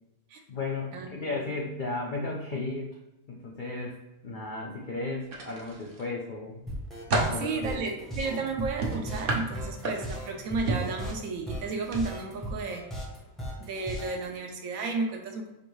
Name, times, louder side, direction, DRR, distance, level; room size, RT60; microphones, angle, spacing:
voice 1, 0.5-2.9 3.3-4.0 4.2-6.6 7.3-7.7, left 3 dB, 70° left, -1 dB, 0.4 m, -34 dB
sound 1, 5.3-6.1 6.6-7.5 8.8-10.3 10.7-11.0 11.8-12.0 12.4-12.6, right 2 dB, 50° right, 0.7 m, -30 dB
sound 2, 6.7-14.2, equal, ahead, 0.5 m, -37 dB
voice 2, 7.4-12.8 13.6-15.5, right 3 dB, 70° right, 3 dB, 1.0 m, -33 dB
4.8 x 2.6 x 3.1 m, 0.93 s
omnidirectional pair, 1.5 m